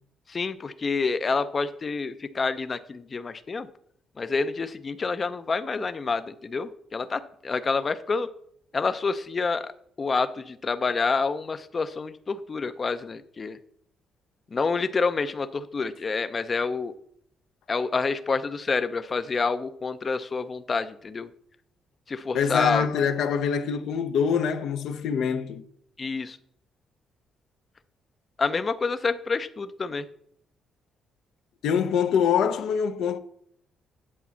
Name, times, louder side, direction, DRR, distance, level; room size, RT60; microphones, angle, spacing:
voice 1, 0.3-3.7 4.2-8.3 8.7-9.7 10.0-13.6 14.5-16.9 17.7-21.3 22.1-22.9 26.0-26.4 28.4-30.1, left 4 dB, 35° left, 0.5 m, -28 dB
voice 2, 22.3-25.6 31.6-33.2, left 7 dB, 80° left, 0.6 m, -24 dB
8.6 x 4.0 x 7.1 m
cardioid pair, 90°, 0 cm